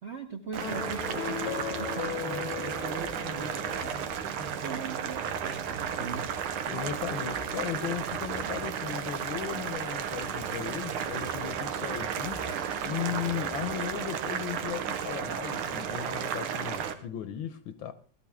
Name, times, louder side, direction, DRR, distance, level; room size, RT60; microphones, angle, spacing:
voice 1, 0.0-6.3, right 5 dB, 45° right, 0.9 m, -40 dB
Motorcycle, 0.5-16.3, left 1 dB, 5° right, 1.5 m, -49 dB
Boiling, 0.5-16.9, right 8 dB, 80° right, 1.9 m, -33 dB
sound 1, 0.6-4.1, left 11 dB, 90° left, 1.7 m, -37 dB
voice 2, 6.7-12.5 12.8-17.9, left 10 dB, 70° left, 1.4 m, -36 dB
16.5 x 12.5 x 3.6 m
omnidirectional pair, 2.4 m